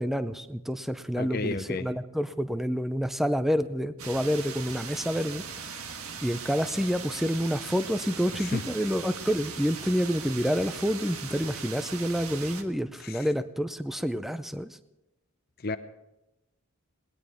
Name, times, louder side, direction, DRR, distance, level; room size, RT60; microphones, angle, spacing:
voice 1, 0.0-5.9 6.2-14.8, equal, ahead, 11 dB, 0.6 m, -28 dB
voice 2, 1.1-1.9 8.4-8.6 13.0-13.3 15.6-15.8, left 3 dB, 45° left, 10 dB, 0.8 m, -32 dB
sound 1, 4.0-12.6, right 6 dB, 80° right, 1.5 m, -39 dB
20.5 x 19.5 x 3.6 m, 0.97 s
head